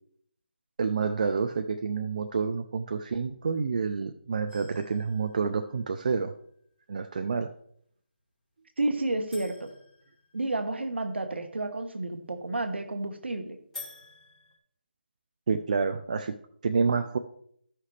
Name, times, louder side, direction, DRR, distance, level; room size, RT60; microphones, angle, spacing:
voice 1, 0.8-6.3 6.9-7.5 15.5-16.3 16.6-17.2, right 5 dB, 45° right, 7 dB, 0.4 m, -28 dB
sound 1, 4.5-6.4 9.3-11.1 13.7-14.6, left 3 dB, 5° left, 1.7 m, -49 dB
voice 2, 8.8-9.7 10.3-13.6, right 2 dB, 80° right, 8 dB, 1.3 m, -31 dB
14.0 x 5.8 x 3.3 m, 0.66 s
figure-of-eight pair, 165°, 6 cm